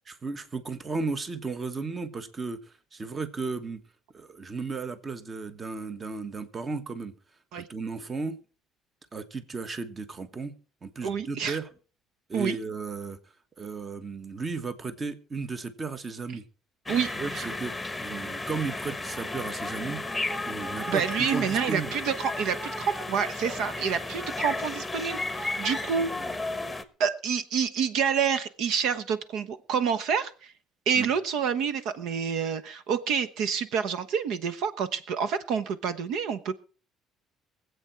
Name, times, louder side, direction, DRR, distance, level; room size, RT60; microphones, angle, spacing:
voice 1, 0.2-3.8 4.1-7.1 7.6-8.4 9.1-10.5 10.8-11.7 12.3-13.2 13.6-16.4 17.1-17.7 18.0-20.0 20.4-21.9 25.9-26.3 31.0-31.1, right 4 dB, 25° right, 12 dB, 1.2 m, -34 dB
voice 2, 11.0-11.6 12.3-12.6 16.9-17.5 20.9-26.1 27.0-30.5 30.9-36.6, right 7 dB, 70° right, 12 dB, 1.0 m, -28 dB
sound 1, 16.9-26.8, left 2 dB, 5° left, 1.1 m, -34 dB
24.0 x 8.1 x 4.5 m, 0.38 s
cardioid pair, 130°, 0 cm